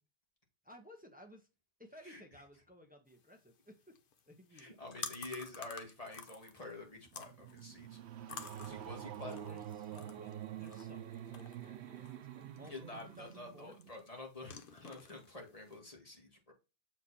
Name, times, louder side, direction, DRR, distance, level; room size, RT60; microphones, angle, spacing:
voice 1, 0.6-1.5 1.8-4.0 4.3-4.8 8.3-13.7, equal, 10° right, 1.1 m, -58 dB
sound 1, 3.1-15.8, left 6 dB, 60° left, 0.9 m, -52 dB
voice 2, 4.5-8.0 8.6-9.5 12.6-16.5, left 2 dB, 35° left, 2.2 m, -48 dB
sound 2, 6.9-14.2, right 10 dB, 90° right, 0.9 m, -47 dB
7.1 x 4.6 x 4.2 m
omnidirectional pair, 1.1 m